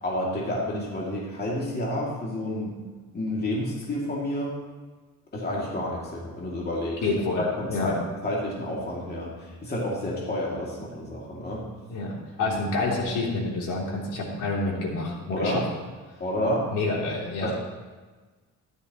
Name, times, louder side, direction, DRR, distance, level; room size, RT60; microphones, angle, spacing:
voice 1, 0.0-2.8 3.1-4.6 5.3-7.0 7.4-11.7 12.4-12.6 15.3-15.6 16.2-16.7 17.4-17.5, left 1 dB, 30° left, -4 dB, 2.7 m, -30 dB
voice 2, 7.0-7.4 7.7-8.0 11.9-15.6 16.7-17.5, left 3 dB, 85° left, -3 dB, 3.4 m, -28 dB
13.5 x 12.5 x 3.1 m, 1.3 s
cardioid pair, 135°, 30 cm